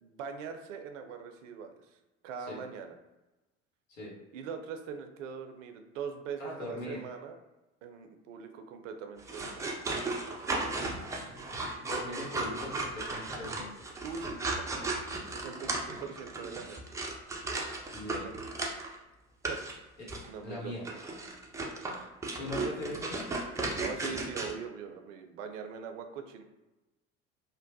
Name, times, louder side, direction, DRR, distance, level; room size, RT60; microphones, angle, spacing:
voice 1, 0.0-2.0 2.2-3.0 4.3-7.4 7.8-9.7 14.0-14.9 15.3-16.8 18.2-18.4 19.5-19.6 20.3-20.7 22.6-22.7 23.8-26.4, right 6 dB, 75° right, 6 dB, 0.5 m, -42 dB
voice 2, 6.4-7.0 10.7-13.7 17.9-18.2 20.0-20.1 20.4-20.8 22.3-23.2, left 1 dB, 75° left, -4 dB, 1.1 m, -41 dB
sound 1, 9.2-19.0 19.4-19.7 20.1-20.3 20.8-24.5, right 2 dB, 10° right, 0.3 m, -35 dB
2.9 x 2.0 x 2.7 m, 1.0 s
figure-of-eight pair, 65°, 39 cm